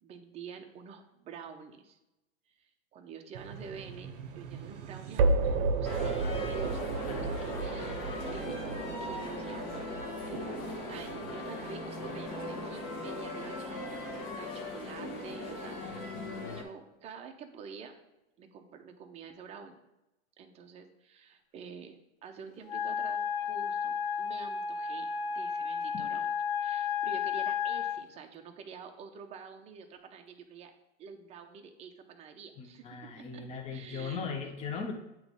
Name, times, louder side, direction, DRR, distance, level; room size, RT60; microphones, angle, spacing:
voice 1, 0.0-2.0 2.5-8.0 8.3-8.6 9.0-10.0 10.3-10.6 10.9-16.1 16.6-17.9 18.4-19.8 20.4-26.3 26.6-30.7 31.0-32.9 33.3-34.3, right 5 dB, 20° right, 4 dB, 0.6 m, -48 dB
sound 1, 3.3-14.4, right 3 dB, 60° right, 0.7 m, -34 dB
sound 2, 5.8-16.6, left 2 dB, 40° left, 1.4 m, -39 dB
Wind instrument woodwind instrument, 22.7-28.0, left 7 dB, 55° left, 0.6 m, -32 dB
voice 2, 32.6-34.9, left 5 dB, 20° left, 4 dB, 0.7 m, -38 dB
8.0 x 3.1 x 5.2 m, 0.93 s
supercardioid pair, 145°, 32 cm